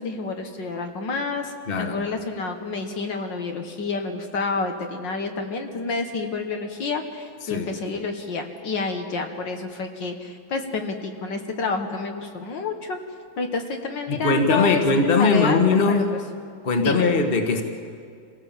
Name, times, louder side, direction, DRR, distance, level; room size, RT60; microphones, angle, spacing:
voice 1, 0.0-13.0 13.4-14.8 15.2-16.1 16.8-17.1, left 4 dB, 65° left, 4 dB, 2.0 m, -29 dB
voice 2, 1.7-2.0 7.4-7.7 14.1-16.1 16.6-17.6, left 4 dB, 30° left, 4 dB, 1.8 m, -20 dB
26.5 x 18.0 x 7.4 m, 2.2 s
omnidirectional pair, 2.2 m